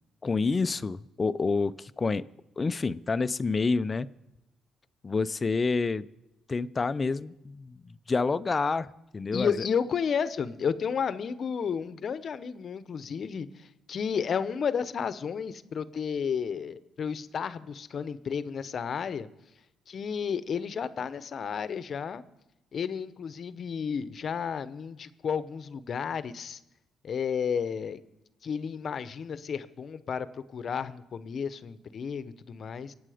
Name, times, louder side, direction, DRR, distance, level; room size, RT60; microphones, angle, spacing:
voice 1, 0.2-2.2 2.6-4.1 5.0-6.1 6.5-9.5, left 4 dB, 30° left, 15 dB, 0.5 m, -28 dB
voice 2, 9.3-19.3 19.9-22.2 22.7-26.6 27.0-28.0 28.4-32.9, left 6 dB, 55° left, 15 dB, 0.8 m, -32 dB
24.0 x 8.7 x 5.0 m, 0.91 s
cardioid pair, 90°, 0 cm